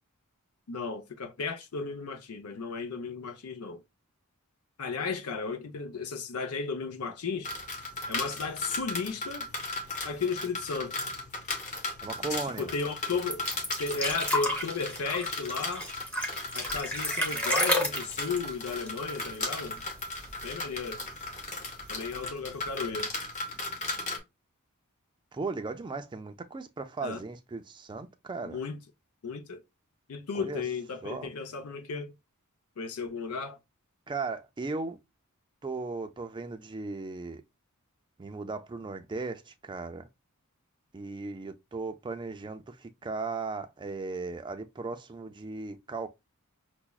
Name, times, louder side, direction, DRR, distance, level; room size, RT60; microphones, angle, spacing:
voice 1, 0.7-3.8 4.8-7.5 8.1-9.5 10.0-11.0 12.6-13.5 13.8-15.9 16.5-19.8 20.4-21.0 21.9-23.1 27.0-27.2 28.4-28.8 29.2-29.6 30.1-32.1 32.8-33.6, left 4 dB, 75° left, 0.6 m, -34 dB
sound 1, 7.4-24.2, left 2 dB, 35° left, 0.8 m, -37 dB
voice 2, 12.0-12.7 25.3-28.6 30.3-30.6 31.0-31.3 34.1-35.0 35.6-37.4 38.2-40.1 40.9-46.1, right 3 dB, 20° right, 0.3 m, -37 dB
sound 2, 13.3-19.7 20.0-20.1 20.4-21.1 21.9-22.0, left 1 dB, 5° left, 0.8 m, -31 dB
5.7 x 2.0 x 2.3 m
head